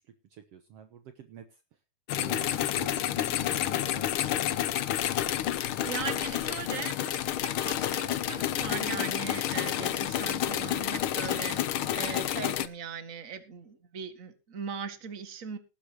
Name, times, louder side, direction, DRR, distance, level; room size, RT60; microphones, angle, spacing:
voice 1, 0.3-1.5 2.1-4.6, right 8 dB, 65° right, 9 dB, 1.9 m, -47 dB
sound 1, 2.1-12.7, left 12 dB, 70° left, 1.3 m, -30 dB
voice 2, 5.5-15.6, right 7 dB, 30° right, 10 dB, 1.9 m, -39 dB
19.0 x 10.0 x 3.0 m, 0.30 s
omnidirectional pair, 3.3 m